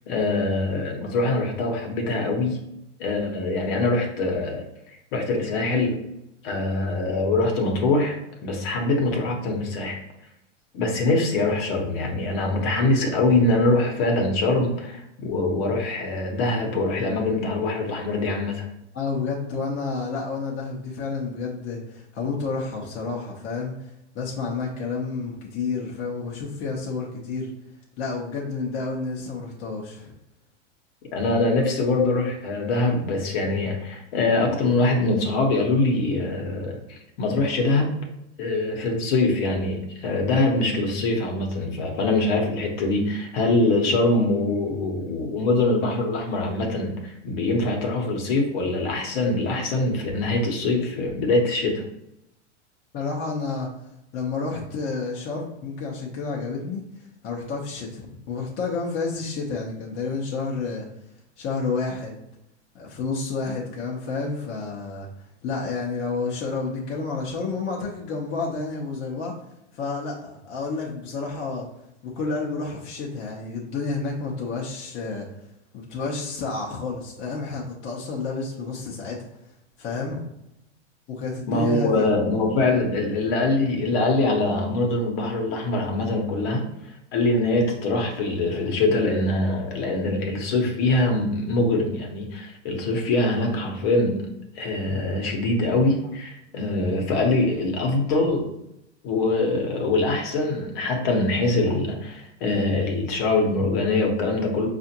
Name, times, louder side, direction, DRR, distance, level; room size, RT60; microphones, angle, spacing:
voice 1, 0.1-2.6 3.0-4.6 5.1-6.0 6.4-10.0 10.7-18.6 31.1-37.9 38.4-51.8 81.5-86.7 87.1-98.5 99.0-104.7, left 2 dB, 55° left, 1 dB, 1.1 m, -23 dB
voice 2, 18.9-27.5 28.0-30.1 52.9-53.7 54.1-60.9 61.4-62.2 62.7-65.1 65.4-69.3 69.7-71.7 72.0-75.3 75.7-79.2 79.8-80.2 81.1-82.1, left 4 dB, 35° left, -2 dB, 0.8 m, -30 dB
4.8 x 2.5 x 2.8 m, 0.85 s
hypercardioid pair, 115°, 36 cm